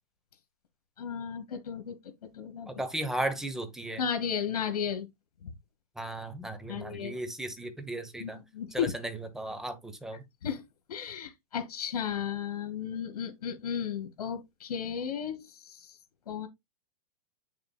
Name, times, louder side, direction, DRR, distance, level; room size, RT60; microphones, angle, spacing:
voice 1, 1.0-2.0 2.3-2.7 4.0-5.1 6.7-7.2 8.2-8.9 10.4-10.6 10.9-15.9 16.3-16.5, left 7 dB, 80° left, 2.1 m, -34 dB
voice 2, 2.7-4.0 6.0-8.4 8.7-10.2, right 1 dB, ahead, 0.8 m, -35 dB
8.3 x 6.7 x 2.2 m
supercardioid pair, 160°, 19 cm